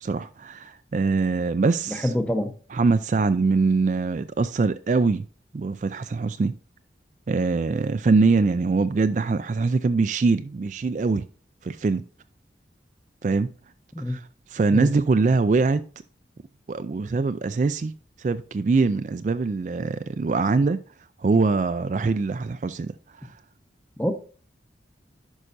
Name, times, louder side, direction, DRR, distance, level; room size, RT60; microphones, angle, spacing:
voice 1, 0.0-2.1 2.7-5.3 5.5-6.5 7.3-11.3 11.6-12.0 13.2-13.5 14.1-15.8 16.7-20.8 21.2-22.9 23.2-23.3, right 4 dB, 45° right, 0.3 m, -23 dB
voice 2, 1.9-2.5 13.9-14.2 14.7-14.9 24.0-24.1, left 1 dB, 10° left, 0.8 m, -25 dB
11.0 x 5.5 x 2.6 m
head